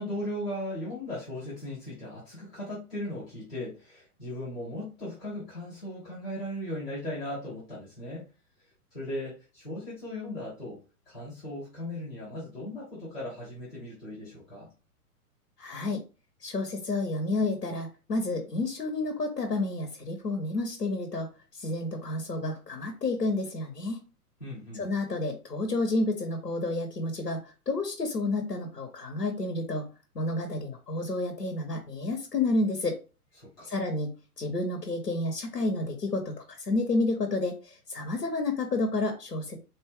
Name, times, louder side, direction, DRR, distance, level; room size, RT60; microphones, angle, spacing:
voice 1, 0.0-8.2 8.9-10.8 11.1-14.7 24.4-24.8 33.4-33.7, left 1 dB, 5° left, -11 dB, 0.4 m, -37 dB
voice 2, 15.6-16.0 16.4-24.0 24.7-29.9 30.1-33.0 33.7-34.1 34.4-39.6, left 2 dB, 90° left, 4 dB, 0.8 m, -30 dB
4.0 x 2.2 x 3.5 m, 0.33 s
figure-of-eight pair, 110°, 46 cm